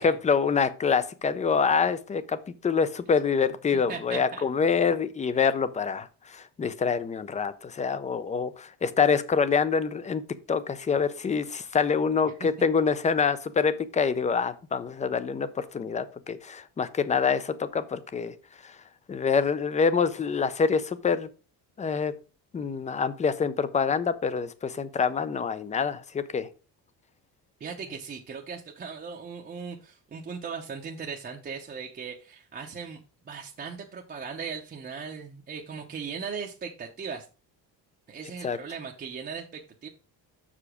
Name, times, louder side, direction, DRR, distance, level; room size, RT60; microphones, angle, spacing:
voice 1, 0.0-2.4 2.6-10.2 10.5-18.3 18.6-18.7 19.1-21.3 21.8-22.1 22.5-26.5 38.4-38.6, left 5 dB, 20° left, 0.4 m, -26 dB
voice 2, 3.7-4.4 12.4-12.5 27.6-33.0 33.3-37.3 38.1-39.9, right 6 dB, 25° right, 0.7 m, -38 dB
6.8 x 5.0 x 4.8 m
cardioid pair, 175°, 41 cm